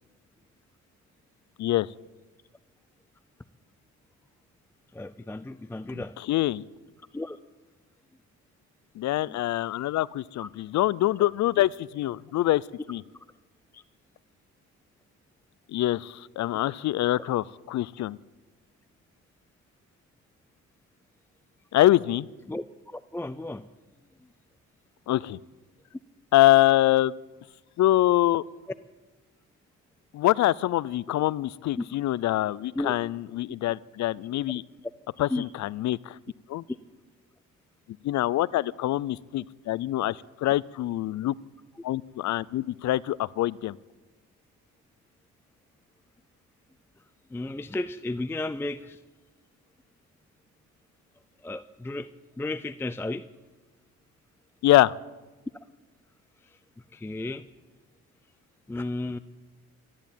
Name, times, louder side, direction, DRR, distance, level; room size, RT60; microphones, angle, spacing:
voice 1, 4.9-6.1 7.1-7.4 9.3-9.4 10.4-10.5 13.7-13.8 17.2-17.3 22.5-22.6 22.9-23.6 31.8-31.9 32.7-33.0 35.3-35.4 47.3-49.0 51.4-52.1 52.4-53.3 56.9-57.5 58.7-59.2, left 2 dB, 10° left, 14 dB, 0.4 m, -33 dB
voice 2, 5.9-6.6 9.0-12.6 12.9-13.0 15.7-18.2 21.7-22.3 25.1-25.4 26.3-27.1 27.8-28.4 30.1-34.6 35.2-36.2 36.5-36.6 38.0-41.3 41.8-43.8 54.6-54.9, left 15 dB, 65° left, 22 dB, 0.5 m, -24 dB
13.5 x 10.5 x 9.0 m, 1.2 s
cardioid pair, 90°, 30 cm